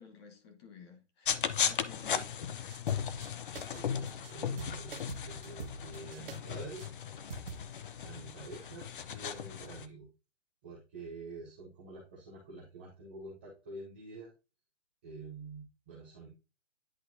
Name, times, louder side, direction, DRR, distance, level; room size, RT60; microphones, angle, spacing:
voice 1, 0.0-2.4, left 6 dB, 20° left, 1.1 m, -53 dB
sound 1, 1.3-9.9, left 8 dB, 45° left, 0.6 m, -36 dB
sound 2, 2.7-3.3 3.5-4.3 4.6-6.4 6.8-6.9 7.3-7.6, right 5 dB, 50° right, 0.8 m, -45 dB
voice 2, 3.3-6.9 8.0-10.1 10.6-14.3 15.0-16.3, right 3 dB, 10° right, 0.5 m, -47 dB
10.0 x 4.3 x 2.7 m
hypercardioid pair, 160°, 36 cm